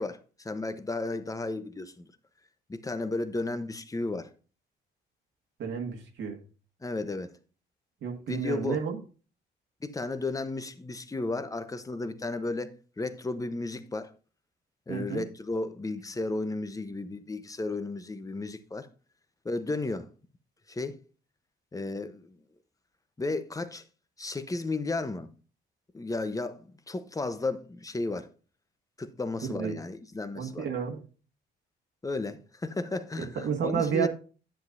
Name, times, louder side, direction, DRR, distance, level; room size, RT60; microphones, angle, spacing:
voice 1, 0.0-2.1 2.7-4.3 6.8-7.3 8.3-8.8 9.8-14.1 14.9-18.9 19.4-20.1 20.7-21.0 21.7-22.4 23.2-23.9 24.2-25.3 25.9-28.3 29.0-30.7 32.0-34.1, left 2 dB, 15° left, 0.9 m, -33 dB
voice 2, 5.6-6.4 8.0-9.0 14.9-15.2 29.5-29.7 30.3-31.0 33.2-34.1, right 7 dB, 75° right, 1.7 m, -31 dB
10.0 x 7.8 x 2.6 m
cardioid pair, 90°, 20 cm